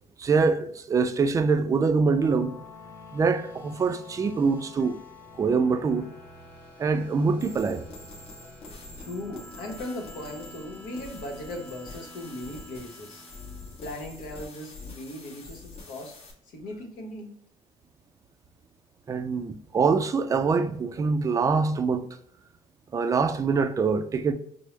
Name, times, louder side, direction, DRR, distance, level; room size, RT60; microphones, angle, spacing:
voice 1, 0.2-2.5 3.1-5.0 5.4-6.1 6.8-7.9 19.1-22.1 22.9-24.3, right 4 dB, 25° right, 0.3 m, -24 dB
sound 1, 1.8-14.1, left 1 dB, 10° left, 0.9 m, -48 dB
sound 2, 7.4-16.3, left 3 dB, 45° left, 1.0 m, -45 dB
voice 2, 9.0-13.2 13.8-16.1 16.4-17.3, left 1 dB, 75° left, 1.0 m, -38 dB
4.5 x 2.0 x 3.1 m
cardioid pair, 95°, 14 cm